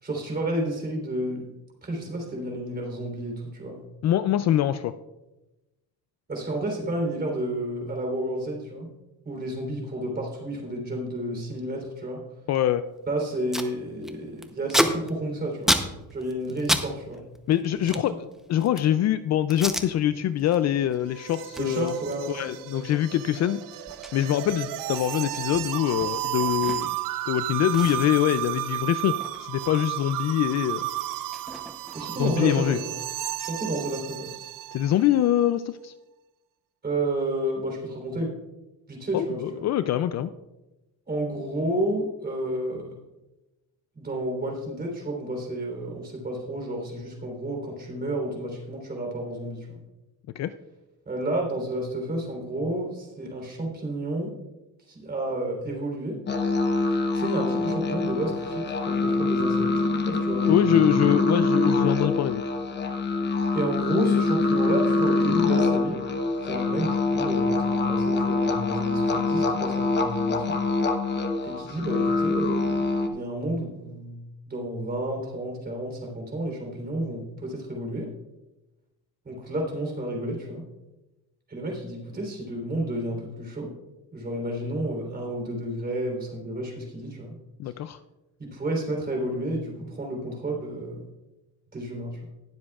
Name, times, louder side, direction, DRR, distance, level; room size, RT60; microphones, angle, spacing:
voice 1, 0.0-1.5 1.8-3.8 6.3-8.9 9.2-12.2 13.1-15.8 16.1-17.2 17.6-18.0 21.5-22.7 31.9-32.9 33.4-34.4 36.8-38.3 38.9-39.7 41.1-42.9 44.0-49.8 51.1-54.3 54.9-56.2 56.8-59.7 60.1-60.9 63.5-66.0 66.4-70.6 71.4-72.8 73.1-78.1 79.3-80.6 81.5-83.7 84.1-87.3 88.4-91.0 91.7-92.2, right 1 dB, 25° right, 1 dB, 3.6 m, -31 dB
voice 2, 4.0-4.9 12.5-12.8 17.5-18.1 18.5-21.9 22.3-23.6 24.1-27.0 27.3-30.8 32.2-32.8 34.7-35.9 39.1-40.3 50.4-50.5 60.5-62.4 87.6-88.0, left 11 dB, 50° left, 13 dB, 0.4 m, -24 dB
Packing tape duct tape, 13.0-13.1 13.3-13.7 14.0-16.9 17.1-19.0 19.5-19.9 20.3-20.6 20.9-27.1 27.4-27.5 27.7-30.1 30.4-32.3, equal, ahead, 0.7 m, -32 dB
sound 1, 20.4-35.1, right 14 dB, 65° right, 0.6 m, -33 dB
sound 2, 56.3-73.1, left 3 dB, 30° left, 1.0 m, -24 dB
20.0 x 7.5 x 2.4 m, 1.0 s
cardioid pair, 125°, 36 cm